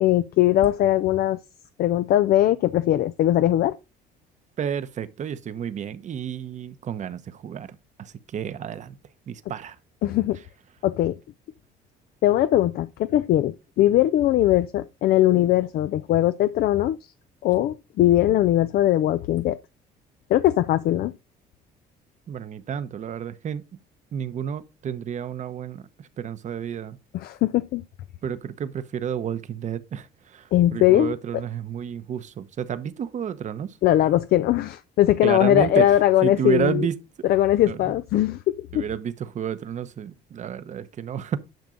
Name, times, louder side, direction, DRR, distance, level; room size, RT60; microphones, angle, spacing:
voice 1, 0.0-1.4 1.8-3.8 10.0-10.4 10.8-11.2 12.2-17.0 17.4-19.6 20.3-21.1 27.1-27.8 30.5-31.1 33.8-36.9 37.2-38.8, left 13 dB, 65° left, 0.5 m, -20 dB
voice 2, 4.6-7.7 8.0-9.0 9.3-9.8 22.3-23.6 24.1-25.9 26.2-27.0 28.2-33.7 35.2-35.9 36.2-36.9 37.7-37.9 38.7-41.4, right 8 dB, 45° right, 0.9 m, -30 dB
10.5 x 6.0 x 3.9 m
cardioid pair, 110°, 17 cm